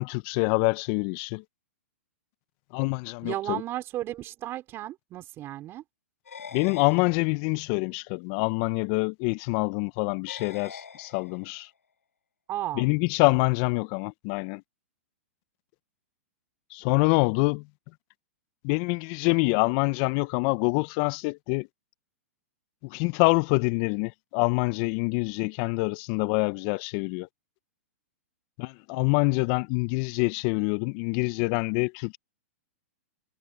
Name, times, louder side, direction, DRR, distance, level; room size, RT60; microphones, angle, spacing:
voice 1, 0.0-1.4 2.7-3.6 6.5-11.7 12.8-14.6 16.7-17.6 18.6-21.7 22.8-27.3 28.6-32.2, left 28 dB, 45° left, 0.6 m, -26 dB
voice 2, 3.2-5.8 12.5-12.9, right 14 dB, 30° right, 4.5 m, -34 dB
sound 1, 6.3-7.7 10.3-11.7, left 6 dB, 90° left, 3.9 m, -45 dB
hypercardioid pair, 120°, 8 cm